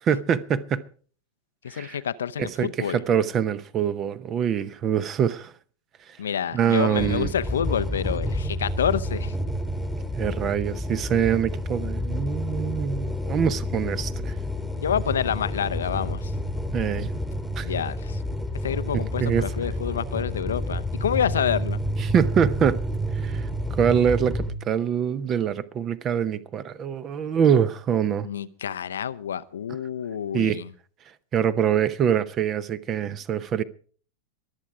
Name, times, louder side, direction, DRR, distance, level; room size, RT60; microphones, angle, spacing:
voice 1, 0.1-0.9 1.7-2.0 2.4-5.5 6.5-7.3 10.1-14.4 16.7-17.1 17.6-17.7 18.9-19.4 22.0-22.8 23.2-28.3 30.3-30.6 31.3-33.6, right 8 dB, 30° right, 0.8 m, -24 dB
voice 2, 1.6-3.0 6.2-9.3 14.8-16.3 17.6-18.2 18.6-21.8 28.2-30.7, left 8 dB, 65° left, 0.6 m, -28 dB
sound 1, 6.9-24.5, equal, ahead, 1.5 m, -29 dB
23.0 x 8.3 x 4.8 m
figure-of-eight pair, 90°, 0 cm